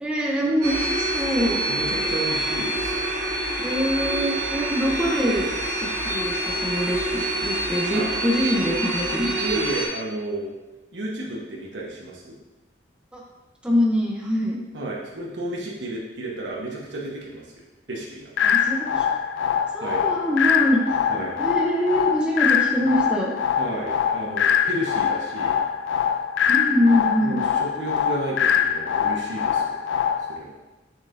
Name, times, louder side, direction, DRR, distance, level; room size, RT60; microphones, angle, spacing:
voice 1, 0.0-1.6 3.6-9.3 13.1-13.2 13.6-14.6 18.4-19.0 19.7-20.8 21.4-23.3 26.5-27.4, equal, 5° right, -3 dB, 0.7 m, -24 dB
sound 1, 0.6-9.9, right 1 dB, 50° right, 1.4 m, -26 dB
voice 2, 1.7-3.1 7.9-8.1 9.4-10.5 10.9-12.3 14.7-17.5 17.9-18.3 19.8-20.0 21.1-21.3 23.6-25.6 27.2-29.8 30.3-30.6, right 1 dB, 75° right, -3 dB, 1.1 m, -32 dB
sound 2, 18.4-30.4, left 8 dB, 80° left, 0.4 m, -23 dB
6.5 x 6.4 x 2.6 m, 1.1 s
head